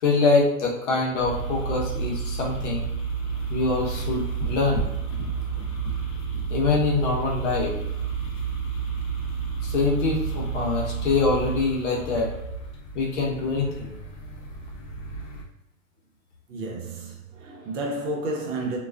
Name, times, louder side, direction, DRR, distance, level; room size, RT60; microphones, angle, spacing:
voice 1, 0.0-2.9 3.5-4.9 6.5-7.8 9.6-12.3 12.9-13.9, left 3 dB, 55° left, 0.9 m, -24 dB
sound 1, 1.2-15.4, right 6 dB, 35° left, 0.5 m, -31 dB
voice 2, 16.5-18.8, right 2 dB, 55° right, 0.8 m, -31 dB
2.3 x 2.3 x 2.3 m
hypercardioid pair, 120°, 44 cm